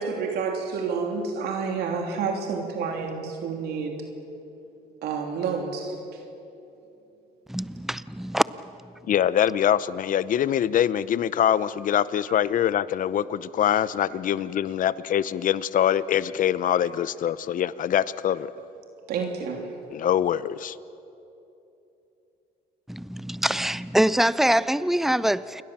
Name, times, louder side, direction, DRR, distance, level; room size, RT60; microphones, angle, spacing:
voice 1, 0.0-3.9 5.0-6.0 19.1-19.7, right 5 dB, 75° right, 3.1 m, -29 dB
voice 2, 7.5-8.4 22.9-25.6, right 1 dB, ahead, 0.6 m, -24 dB
voice 3, 9.1-18.5 19.9-20.8, left 10 dB, 50° left, 0.8 m, -24 dB
28.5 x 22.0 x 7.5 m
cardioid pair, 110°, 17 cm